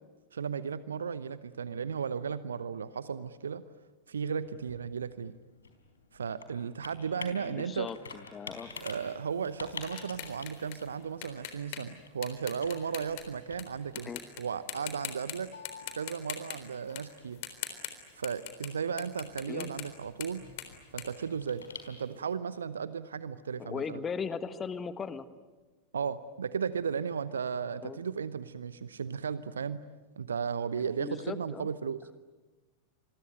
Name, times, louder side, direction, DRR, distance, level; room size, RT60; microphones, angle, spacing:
voice 1, 0.3-3.6 4.1-5.3 6.1-7.9 8.8-14.1 14.4-15.5 16.0-17.4 18.1-20.4 20.9-24.0 25.9-29.8 30.2-32.0, right 6 dB, 70° right, 16 dB, 0.8 m, -35 dB
Computer keyboard, 4.1-22.4, left 5 dB, 70° left, 4.0 m, -50 dB
voice 2, 7.4-8.7 13.9-14.2 19.5-19.7 23.6-25.3 27.8-28.0 31.0-31.7, left 6 dB, 20° left, 13 dB, 1.5 m, -38 dB
sound 1, 8.7-13.6 14.0-14.4 14.7-15.3 15.6-18.7 19.0-22.0, left 12 dB, 50° left, 3.8 m, -42 dB
27.5 x 22.5 x 9.2 m, 1.2 s
figure-of-eight pair, 90°, 0 cm